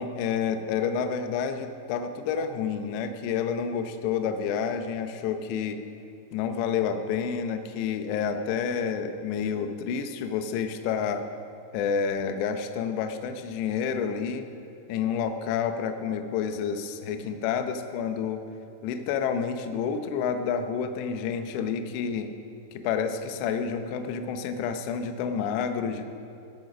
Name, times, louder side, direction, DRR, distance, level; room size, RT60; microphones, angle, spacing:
voice 1, 0.0-5.8 6.3-11.2 11.7-14.4 14.9-18.4 18.8-22.3 22.7-26.1, left 7 dB, 80° left, 7 dB, 2.6 m, -29 dB
16.5 x 8.3 x 6.2 m, 2.6 s
omnidirectional pair, 5.7 m